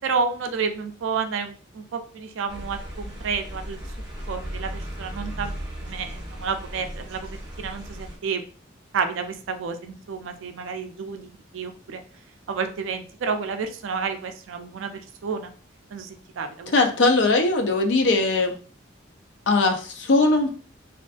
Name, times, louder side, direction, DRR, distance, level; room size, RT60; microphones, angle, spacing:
voice 1, 0.0-3.8 4.3-5.5 5.8-8.4 8.9-12.0 12.5-15.5 15.9-16.7, right 5 dB, 85° right, 7 dB, 0.4 m, -30 dB
sound 1, 2.5-8.2, equal, 20° right, 0.8 m, -36 dB
voice 2, 16.7-18.6 19.5-20.5, left 3 dB, 70° left, 4 dB, 0.5 m, -20 dB
2.5 x 2.4 x 2.3 m, 0.41 s
head